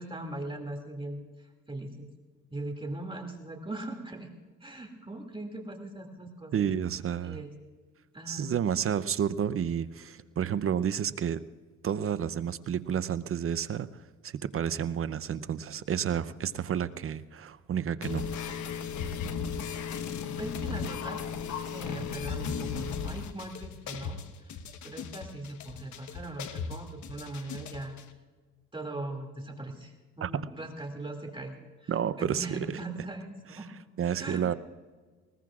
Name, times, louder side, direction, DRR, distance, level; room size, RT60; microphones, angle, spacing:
voice 1, 0.0-2.1 2.5-4.3 4.6-6.7 7.2-7.5 8.1-8.5 20.4-24.6 24.8-28.0 28.7-33.7 34.2-34.6, right 2 dB, 15° right, 3 dB, 2.4 m, -40 dB
voice 2, 6.5-7.4 8.3-11.4 11.8-18.3 30.2-30.5 31.9-32.6 34.0-34.5, right 8 dB, 45° right, 14 dB, 0.6 m, -30 dB
sound 1, 18.0-28.0, left 6 dB, 70° left, 1.2 m, -36 dB
21.0 x 21.0 x 2.4 m, 1.4 s
cardioid pair, 90°, 30 cm